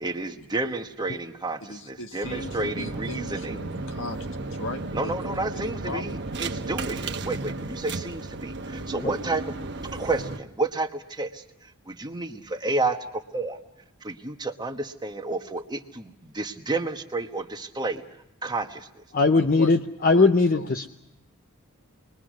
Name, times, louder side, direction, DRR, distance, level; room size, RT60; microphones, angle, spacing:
voice 1, 0.0-3.5 4.9-9.5 9.9-13.6 14.0-18.0 18.4-19.0, right 2 dB, 20° right, 6 dB, 1.2 m, -31 dB
voice 2, 1.6-6.0 19.3-19.8 20.1-20.7, left 2 dB, 60° left, 6 dB, 1.6 m, -38 dB
sound 1, 2.2-10.4, right 3 dB, 50° right, 1.1 m, -34 dB
voice 3, 19.1-20.9, left 3 dB, 40° left, 6 dB, 0.8 m, -20 dB
27.5 x 21.5 x 6.3 m, 0.85 s
head